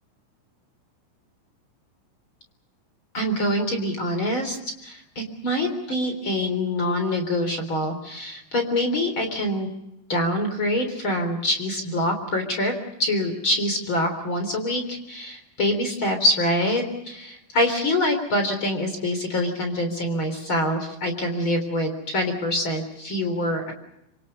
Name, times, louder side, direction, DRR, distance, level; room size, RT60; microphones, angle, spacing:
voice 1, 3.1-4.6 4.8-9.7 10.1-12.7 13.0-23.7, left 1 dB, 25° left, 5 dB, 3.6 m, -25 dB
26.5 x 26.0 x 5.5 m, 0.84 s
omnidirectional pair, 6.0 m